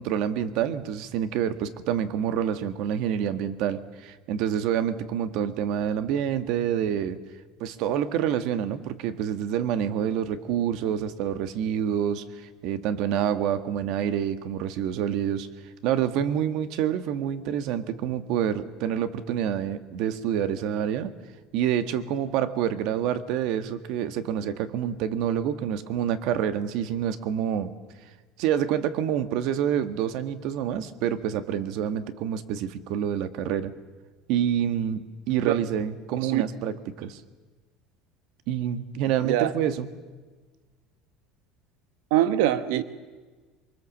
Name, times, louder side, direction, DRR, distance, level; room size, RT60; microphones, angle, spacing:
voice 1, 0.0-7.2 7.6-15.5 15.8-21.1 21.5-27.7 28.4-33.7 34.3-37.2 38.5-39.9, right 9 dB, 60° right, 11 dB, 1.5 m, -27 dB
voice 2, 42.1-42.8, right 13 dB, 85° right, 12 dB, 1.1 m, -22 dB
24.0 x 24.0 x 7.4 m, 1.3 s
cardioid pair, 155°, 0 cm